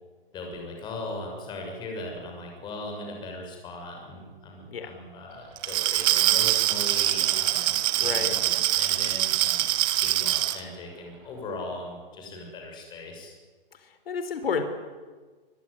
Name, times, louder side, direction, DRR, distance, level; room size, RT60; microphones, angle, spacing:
voice 1, 0.3-9.6 10.0-13.3, left 2 dB, 15° left, 2 dB, 6.5 m, -39 dB
sound 1, 5.3-11.6, right 4 dB, 40° right, 5.0 m, -48 dB
Glass, 5.6-10.6, right 15 dB, 15° right, 0.9 m, -24 dB
voice 2, 8.0-8.4 13.7-14.6, left 6 dB, 80° left, 8 dB, 4.0 m, -31 dB
23.0 x 22.0 x 9.8 m, 1.4 s
hypercardioid pair, 165°, 29 cm